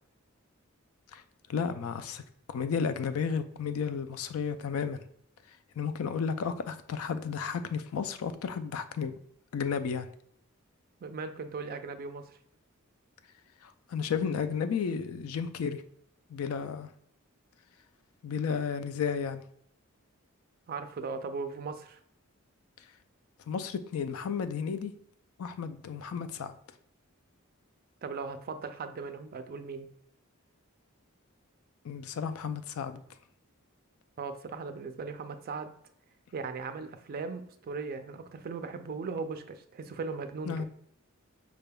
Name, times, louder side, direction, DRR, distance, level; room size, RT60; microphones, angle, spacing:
voice 1, 1.5-2.2 2.5-5.0 5.8-9.1 9.5-10.1 13.6-15.8 16.3-16.9 18.2-19.4 23.5-24.9 25.4-26.5 31.8-33.0 40.5-40.6, left 6 dB, 75° left, 11 dB, 0.4 m, -33 dB
voice 2, 11.0-12.3 20.7-22.0 28.0-29.9 34.2-35.7 36.3-40.6, right 4 dB, 45° right, 9 dB, 0.4 m, -38 dB
4.9 x 3.4 x 2.2 m, 0.67 s
head